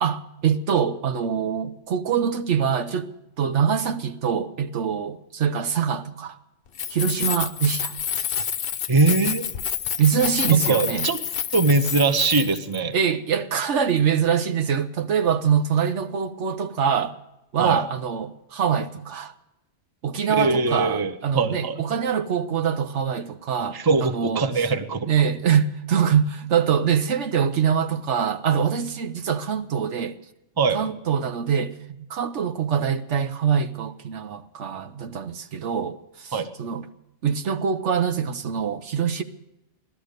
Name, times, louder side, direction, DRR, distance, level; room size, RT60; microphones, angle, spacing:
voice 1, 0.0-3.1 3.4-6.4 6.9-7.9 10.0-11.1 12.9-17.2 17.5-19.3 20.0-24.5 25.1-30.1 30.7-36.8 37.2-39.2, right 7 dB, 70° right, 1.1 m, -24 dB
Keys jangling, 6.7-12.8, left 8 dB, 55° left, 0.8 m, -28 dB
voice 2, 8.9-9.4 10.5-11.2 11.5-13.0 17.6-17.8 20.4-21.8 23.7-25.1 30.6-30.9 36.3-36.5, right 3 dB, 20° right, 0.8 m, -22 dB
17.0 x 12.5 x 6.6 m
omnidirectional pair, 1.3 m